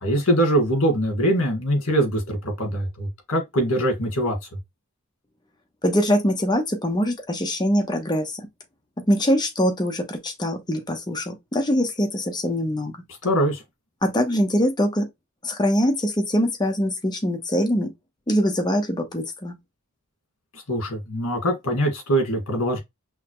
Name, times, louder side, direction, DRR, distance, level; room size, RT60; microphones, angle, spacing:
voice 1, 0.0-4.4 13.2-13.6 20.5-22.8, right 1 dB, 65° left, 1.8 m, -23 dB
voice 2, 5.8-8.5 9.0-13.0 14.0-15.1 15.4-17.9 18.3-19.6, equal, 20° left, 0.9 m, -23 dB
5.6 x 2.1 x 3.1 m
head